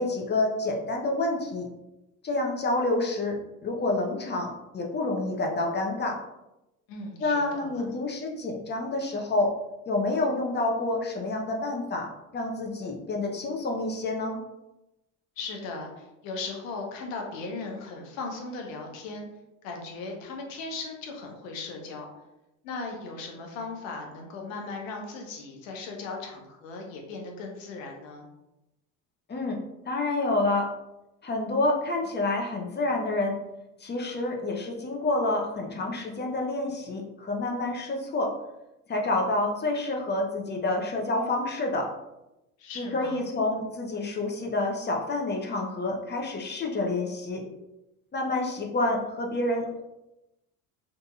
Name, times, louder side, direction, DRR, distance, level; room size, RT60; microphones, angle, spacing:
voice 1, 0.0-1.7 2.2-6.2 7.2-9.5 9.9-14.4 29.3-29.6 29.8-30.7 31.2-33.4 33.8-38.3 38.9-41.9 42.7-47.4 48.1-49.8, left 2 dB, 25° left, 1 dB, 0.6 m, -28 dB
voice 2, 6.9-7.9 15.4-19.3 19.6-22.0 22.6-28.3 42.6-43.2, left 3 dB, 90° left, 1 dB, 0.7 m, -37 dB
2.8 x 2.6 x 2.3 m, 0.93 s
supercardioid pair, 80°, 38 cm